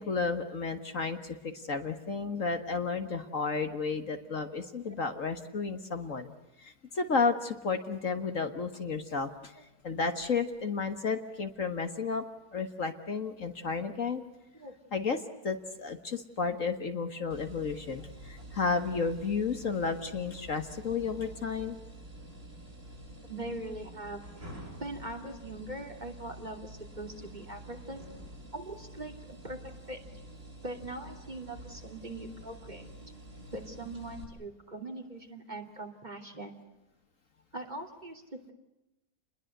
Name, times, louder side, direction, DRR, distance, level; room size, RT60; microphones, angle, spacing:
voice 1, 0.0-6.3 6.6-9.5 9.8-12.2 12.5-14.2 14.9-21.8, left 4 dB, 50° left, 7 dB, 1.9 m, -32 dB
sound 1, 17.3-34.2, right 1 dB, 50° right, 7.8 m, -48 dB
voice 2, 23.2-24.2 24.8-28.0 28.5-30.0 30.6-32.9 33.5-36.6 37.5-38.5, right 2 dB, 25° right, 4 dB, 3.1 m, -41 dB
29.5 x 21.5 x 8.0 m, 0.97 s
omnidirectional pair, 1.7 m